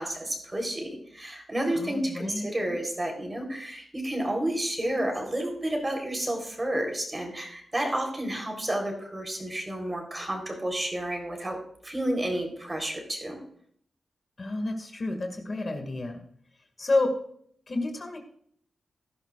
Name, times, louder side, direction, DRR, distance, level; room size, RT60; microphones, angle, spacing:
voice 1, 0.0-13.4, right 1 dB, 25° right, 3 dB, 4.0 m, -31 dB
voice 2, 1.7-2.5 14.4-16.2 16.8-17.1 17.7-18.2, left 2 dB, 45° left, 4 dB, 2.2 m, -29 dB
16.5 x 11.0 x 2.5 m, 0.62 s
cardioid pair, 60°, 0 cm